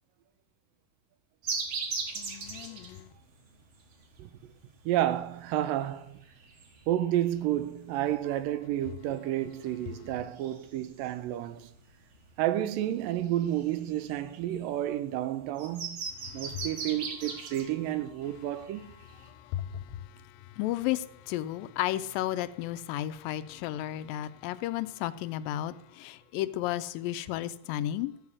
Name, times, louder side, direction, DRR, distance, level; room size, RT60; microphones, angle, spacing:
sound 1, 1.4-19.3, right 4 dB, 50° right, 1.9 m, -41 dB
voice 1, 2.2-3.1 16.3-16.7 19.2-28.1, left 13 dB, 85° left, 2.3 m, -34 dB
voice 2, 4.9-6.3 6.9-11.7 12.4-16.0 16.3-18.8, right 12 dB, 85° right, 2.3 m, -30 dB
14.0 x 4.9 x 7.1 m
omnidirectional pair, 4.0 m